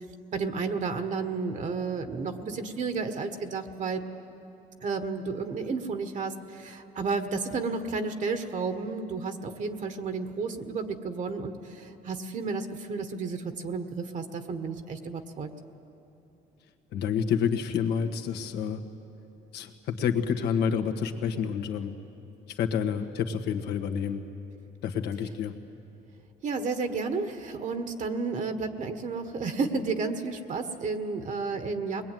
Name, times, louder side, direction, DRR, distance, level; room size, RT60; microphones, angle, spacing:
voice 1, 0.3-4.0 4.8-15.5 26.4-32.0, right 4 dB, 45° right, 8 dB, 1.5 m, -32 dB
voice 2, 16.9-18.8 19.5-21.9 22.5-24.2 24.8-25.5, left 7 dB, 75° left, 5 dB, 1.7 m, -28 dB
22.0 x 21.0 x 9.3 m, 2.9 s
cardioid pair, 110°, 17 cm